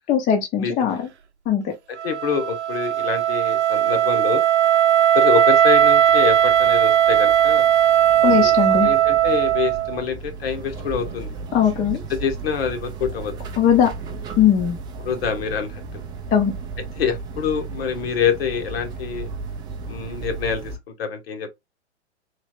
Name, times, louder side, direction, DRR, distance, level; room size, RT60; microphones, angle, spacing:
voice 1, 0.1-1.0 1.5-1.7 8.2-8.9 11.5-12.0 13.6-13.9 14.4-14.8 16.3-16.5, left 9 dB, 25° left, 0.7 m, -19 dB
voice 2, 0.6-1.0 2.0-4.4 5.1-7.6 8.2-11.3 12.1-13.3 15.0-15.8 17.0-19.3 19.9-20.7 21.0-21.5, left 7 dB, 60° left, 1.1 m, -26 dB
Wind instrument woodwind instrument, 2.0-10.0, right 10 dB, 80° right, 0.7 m, -17 dB
sound 1, 5.4-20.8, right 4 dB, 15° right, 0.4 m, -35 dB
3.2 x 2.8 x 2.6 m
figure-of-eight pair, 105°, 34 cm